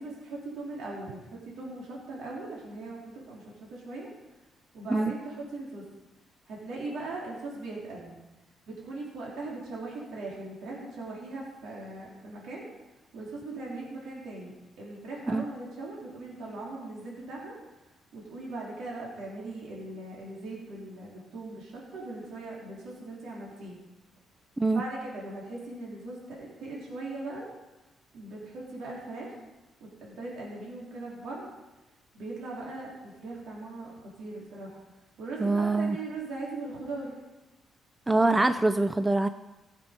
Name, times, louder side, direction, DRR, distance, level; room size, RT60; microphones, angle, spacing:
voice 1, 0.0-4.1 4.7-5.8 6.5-8.2 8.7-12.7 13.1-17.6 18.1-23.8 24.7-27.5 28.1-29.4 29.8-31.5 32.1-34.8 35.2-37.2, right 2 dB, 80° right, -4 dB, 3.7 m, -39 dB
voice 2, 35.4-36.0 38.1-39.3, right 2 dB, 15° right, 10 dB, 0.5 m, -24 dB
16.0 x 7.5 x 5.2 m, 1.1 s
cardioid pair, 90°, 0 cm